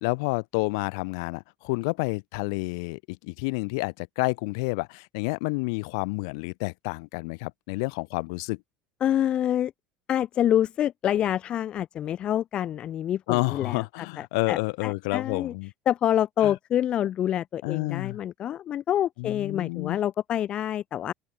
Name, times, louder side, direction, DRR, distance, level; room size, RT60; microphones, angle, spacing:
voice 1, 0.0-8.6 13.3-15.7 16.4-16.5 17.6-18.2 19.2-20.0, left 30 dB, 80° left, 2.3 m, -29 dB
voice 2, 9.0-9.7 10.1-15.5 15.9-21.1, left 11 dB, 40° left, 0.8 m, -27 dB
open air
supercardioid pair, 125°, 3 cm